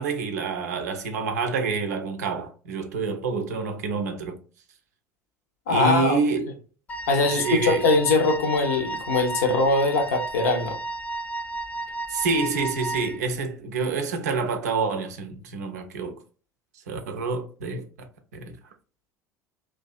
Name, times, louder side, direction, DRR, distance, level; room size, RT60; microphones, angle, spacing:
voice 1, 0.0-4.4 5.7-6.5 7.3-7.8 12.1-16.2 16.9-18.6, right 4 dB, 70° right, 0.4 m, -27 dB
voice 2, 5.7-6.2 7.1-10.8, left 3 dB, 70° left, 0.6 m, -22 dB
Wind instrument woodwind instrument, 6.9-13.2, right 2 dB, 15° left, 0.3 m, -33 dB
2.6 x 2.2 x 2.3 m
figure-of-eight pair, 65°, 9 cm